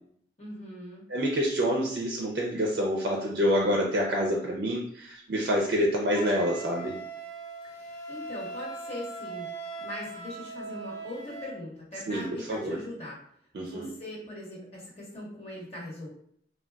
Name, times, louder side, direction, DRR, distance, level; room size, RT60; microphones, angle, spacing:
voice 1, 0.4-1.0 7.7-9.5 9.8-13.2 13.6-16.1, left 1 dB, 35° left, -4 dB, 1.1 m, -41 dB
voice 2, 1.1-6.9 12.1-12.8 13.5-13.9, equal, 60° right, -1 dB, 0.4 m, -27 dB
Wind instrument woodwind instrument, 6.1-11.6, right 3 dB, 20° left, 0.9 m, -40 dB
3.7 x 2.2 x 2.2 m, 0.65 s
head